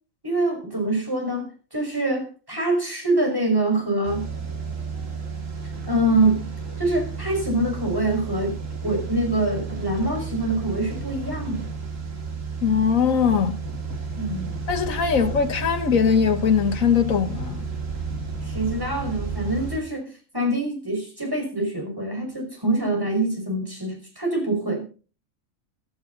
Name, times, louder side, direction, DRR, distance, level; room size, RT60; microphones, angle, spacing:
voice 1, 0.2-4.3 5.9-6.5 6.8-8.6 8.8-11.6 14.2-14.6 18.4-24.8, right 2 dB, 15° right, 5.4 m, -25 dB
sound 1, 4.0-19.8, right 4 dB, 70° right, 2.8 m, -32 dB
voice 2, 12.6-13.6 14.7-17.6, left 6 dB, 80° left, 1.7 m, -21 dB
15.0 x 13.5 x 4.0 m
omnidirectional pair, 1.4 m